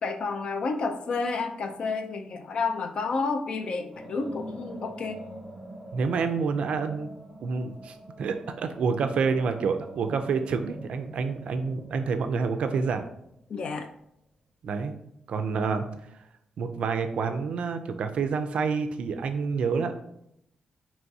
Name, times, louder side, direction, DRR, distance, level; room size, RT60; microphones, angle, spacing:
voice 1, 0.0-5.2 13.5-13.9, left 4 dB, 45° left, 6 dB, 0.4 m, -30 dB
sound 1, 3.9-14.1, right 1 dB, 5° left, 0.7 m, -45 dB
voice 2, 5.9-7.1 7.4-13.1 14.6-14.9 15.3-15.9 16.6-19.9, right 5 dB, 60° right, 8 dB, 0.3 m, -28 dB
4.6 x 3.0 x 2.6 m, 0.77 s
wide cardioid pair, 170°, 2 cm